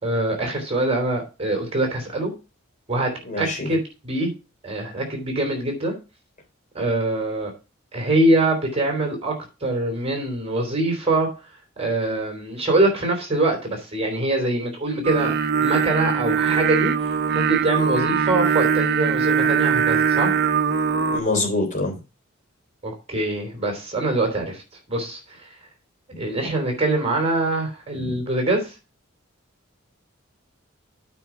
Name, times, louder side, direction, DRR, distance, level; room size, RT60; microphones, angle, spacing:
voice 1, 0.0-2.3 2.9-3.1 3.4-4.3 4.6-5.9 6.7-7.5 7.9-9.3 9.6-11.3 11.8-15.3 15.6-16.9 17.3-20.4 22.8-24.6 24.9-25.2 26.2-28.7, right 2 dB, 30° right, 3 dB, 3.2 m, -23 dB
voice 2, 3.3-3.7 21.1-22.0 28.0-28.1, left 2 dB, 40° left, 1 dB, 3.4 m, -25 dB
Singing, 15.0-21.2, right 7 dB, 50° right, 0.7 m, -21 dB
8.8 x 4.6 x 5.9 m, 0.30 s
head